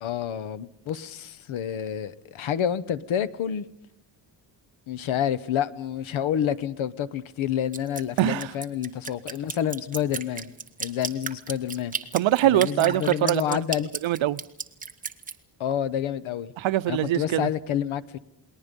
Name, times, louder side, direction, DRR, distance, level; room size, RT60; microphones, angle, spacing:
voice 1, 0.0-3.6 4.9-10.5 10.8-12.0 12.4-13.9 15.6-16.5 16.9-18.2, left 9 dB, 85° left, 1.1 m, -28 dB
Drip, 7.7-15.3, right 5 dB, 15° right, 1.1 m, -34 dB
voice 2, 8.2-8.5 12.1-13.6 14.0-14.4 16.6-17.5, right 14 dB, 75° right, 0.8 m, -23 dB
29.0 x 20.5 x 5.3 m
wide cardioid pair, 155°, 46 cm